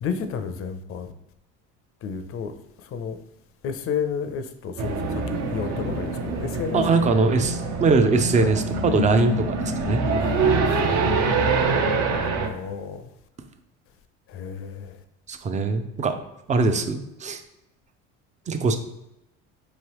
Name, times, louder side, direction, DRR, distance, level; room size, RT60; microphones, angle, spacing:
voice 1, 0.0-1.1 2.0-2.5 2.9-3.2 3.6-6.8 8.4-8.5 10.0-11.6 12.5-13.0 14.3-14.9, left 6 dB, 40° left, 10 dB, 0.5 m, -32 dB
sound 1, 4.8-12.5, right 3 dB, 50° right, 0.7 m, -25 dB
voice 2, 6.7-10.0 15.3-16.2 16.5-17.4 18.5-18.8, right 3 dB, 20° right, 8 dB, 0.5 m, -22 dB
4.6 x 3.1 x 3.0 m, 0.89 s
hypercardioid pair, 85°, 36 cm